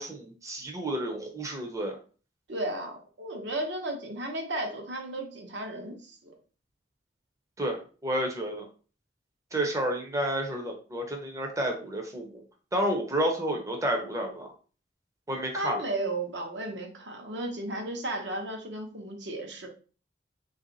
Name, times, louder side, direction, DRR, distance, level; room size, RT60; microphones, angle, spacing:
voice 1, 0.0-2.0 7.6-8.7 9.5-12.3 12.7-14.5 15.3-15.8, right 1 dB, 15° right, 2 dB, 0.6 m, -30 dB
voice 2, 2.5-6.3 15.5-19.7, right 1 dB, 70° right, 2 dB, 1.0 m, -34 dB
3.4 x 2.6 x 3.9 m, 0.38 s
head